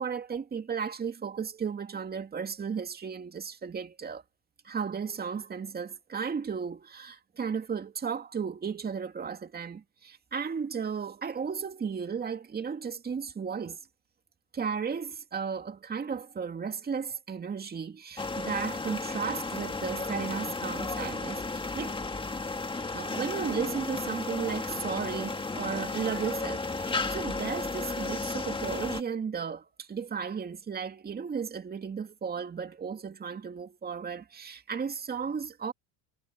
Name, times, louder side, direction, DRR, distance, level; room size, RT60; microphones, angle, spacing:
voice 1, 0.0-4.2 4.6-13.8 14.5-22.0 22.9-35.7, right 6 dB, 20° right, 2.4 m, -34 dB
sound 1, 18.2-29.0, left 3 dB, 10° left, 2.2 m, -34 dB
supercardioid pair, 105°, 41 cm